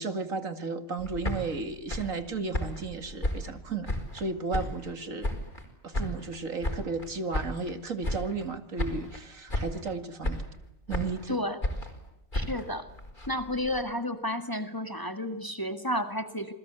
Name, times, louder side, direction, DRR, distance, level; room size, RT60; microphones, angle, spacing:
voice 1, 0.0-5.3 5.8-10.4 10.9-11.4, right 4 dB, 75° right, 9 dB, 2.5 m, -34 dB
sound 1, 1.0-4.2 4.5-5.7 5.9-7.7 8.0-8.5 8.8-9.2 9.5-9.9 10.2-11.3 11.6-13.8, left 1 dB, 35° left, 5.2 m, -34 dB
voice 2, 11.3-11.6 12.3-12.9 13.3-16.5, left 1 dB, 15° left, 8 dB, 1.8 m, -31 dB
28.0 x 21.0 x 8.2 m, 0.89 s
omnidirectional pair, 1.4 m